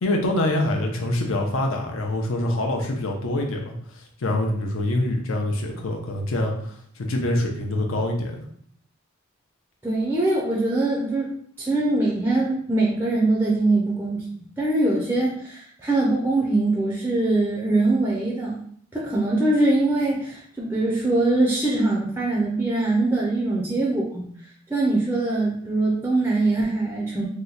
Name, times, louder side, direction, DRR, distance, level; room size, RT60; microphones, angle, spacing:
voice 1, 0.0-8.4, left 1 dB, 75° left, 2 dB, 0.5 m, -25 dB
voice 2, 9.8-14.2 14.6-18.6 18.9-24.3 24.7-27.2, right 2 dB, 10° right, -4 dB, 0.4 m, -22 dB
2.8 x 2.1 x 3.8 m, 0.64 s
head